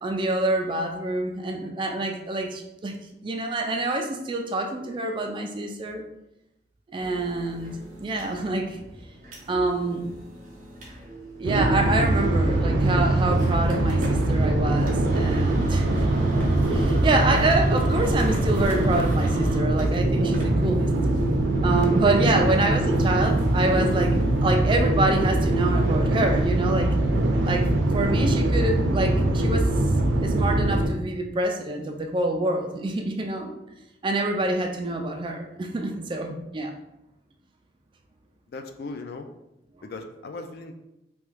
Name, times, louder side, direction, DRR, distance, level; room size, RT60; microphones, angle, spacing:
voice 1, 0.0-3.0 3.2-6.0 6.9-8.8 9.5-10.0 11.4-16.1 16.7-20.9 21.6-26.9 27.4-29.7 30.2-33.5 34.0-36.7, right 2 dB, 25° right, 3 dB, 0.3 m, -26 dB
sound 1, 7.0-24.3, right 2 dB, 45° right, 0.8 m, -42 dB
sound 2, 11.4-30.9, right 1 dB, 90° right, 0.5 m, -22 dB
sound 3, 15.0-19.8 20.7-21.3 22.5-22.6 22.9-24.1 24.7-24.8 27.4-27.5, equal, 10° left, 0.6 m, -37 dB
voice 2, 22.2-22.6 38.5-39.3 39.8-40.7, left 3 dB, 55° left, 6 dB, 0.3 m, -38 dB
3.0 x 2.3 x 3.2 m, 0.87 s
head